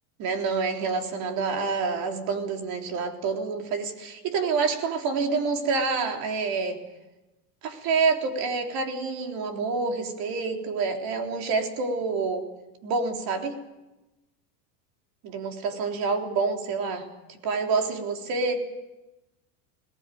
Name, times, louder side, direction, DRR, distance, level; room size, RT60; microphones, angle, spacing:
voice 1, 0.2-6.8 7.6-12.5 12.8-13.5 15.2-17.1 17.4-18.6, right 4 dB, 50° right, 3 dB, 3.7 m, -27 dB
21.5 x 18.5 x 9.3 m, 1.0 s
supercardioid pair, 135°, 47 cm